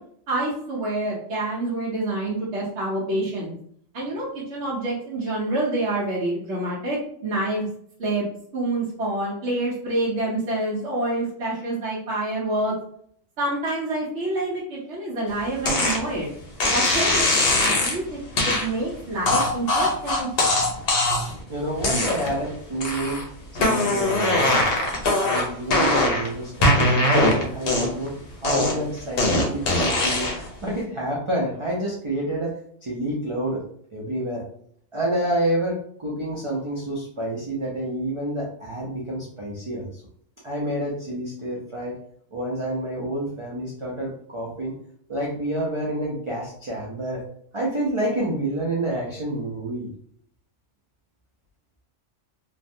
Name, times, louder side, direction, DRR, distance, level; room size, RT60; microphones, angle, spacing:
voice 1, 0.3-3.5 3.9-7.7 8.0-8.3 8.5-12.8 13.4-16.3 16.7-17.3 17.6-18.2 18.4-20.3, right 2 dB, 65° right, -6 dB, 1.1 m, -27 dB
sound 1, 15.7-16.0 16.6-18.0 18.4-18.7 19.3-21.4 21.8-22.4 22.8-23.2 23.6-26.3 26.6-28.1 28.4-30.5, left 2 dB, 55° left, 0.9 m, -21 dB
voice 2, 21.5-23.2 23.5-24.7 25.2-30.3 30.6-32.5 32.8-33.6 33.9-34.5 34.9-40.0 40.4-42.0 42.3-44.8 45.1-47.2 47.5-49.9, right 1 dB, 40° right, -5 dB, 0.4 m, -28 dB
3.2 x 2.2 x 2.6 m, 0.64 s
omnidirectional pair, 1.3 m